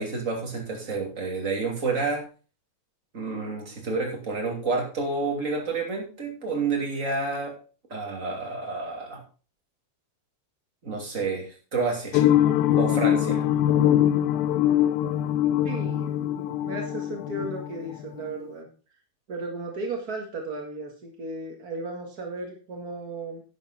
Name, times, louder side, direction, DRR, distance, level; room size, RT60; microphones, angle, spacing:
voice 1, 0.0-2.2 3.1-7.5 7.9-9.2 10.8-12.2 12.7-13.4, right 3 dB, 20° right, 0 dB, 2.3 m, -29 dB
sound 1, 12.1-18.3, left 11 dB, 85° left, 2.0 m, -23 dB
voice 2, 15.6-16.1 16.6-18.7 19.3-23.4, right 2 dB, 65° right, 1 dB, 0.9 m, -35 dB
11.0 x 9.2 x 4.2 m, 0.35 s
omnidirectional pair, 5.0 m